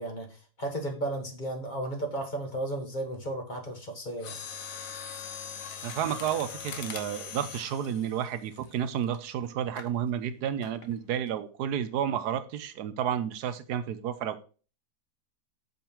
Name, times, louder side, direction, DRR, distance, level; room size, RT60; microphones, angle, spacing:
voice 1, 0.0-4.3, right 1 dB, 30° left, 1.5 m, -34 dB
Mechanisms, 4.2-9.2 9.7-10.0 10.6-10.9 11.3-11.4, left 7 dB, 60° left, 1.2 m, -41 dB
voice 2, 5.8-14.4, right 9 dB, 80° right, 1.2 m, -31 dB
6.2 x 5.3 x 4.4 m
omnidirectional pair, 1.7 m